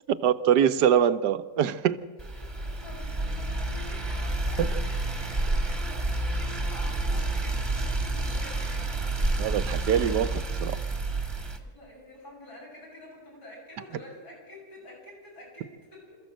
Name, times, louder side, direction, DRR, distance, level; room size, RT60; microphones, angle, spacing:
voice 1, 0.2-2.0 4.6-4.7 9.4-10.8, right 9 dB, 75° right, 1.4 m, -24 dB
sound 1, 2.2-11.6, right 2 dB, 15° right, 1.5 m, -29 dB
voice 2, 2.3-8.8 11.3-16.2, equal, 60° left, 8.6 m, -48 dB
27.0 x 14.0 x 7.7 m
omnidirectional pair, 1.9 m